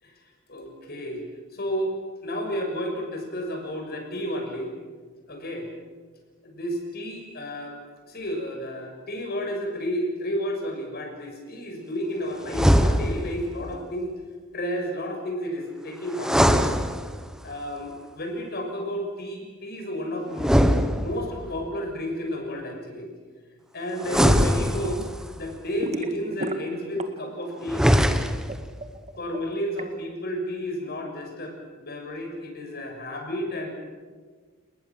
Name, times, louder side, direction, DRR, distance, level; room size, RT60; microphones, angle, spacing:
voice 1, 0.5-1.2 1.5-1.9 2.2-4.7 5.3-5.7 6.4-7.8 8.0-14.1 14.5-16.5 17.4-20.6 21.0-23.1 23.7-25.0 25.3-27.9 29.2-33.7, equal, 50° left, 3 dB, 6.6 m, -32 dB
sound 1, 12.5-13.4 16.1-17.5 20.3-21.5 24.0-25.3 27.6-28.6, equal, 5° right, 1.3 m, -21 dB
sound 2, 24.4-25.1 25.3-27.4 27.6-29.9, right 2 dB, 35° right, 1.9 m, -34 dB
30.0 x 20.5 x 7.6 m, 1.5 s
head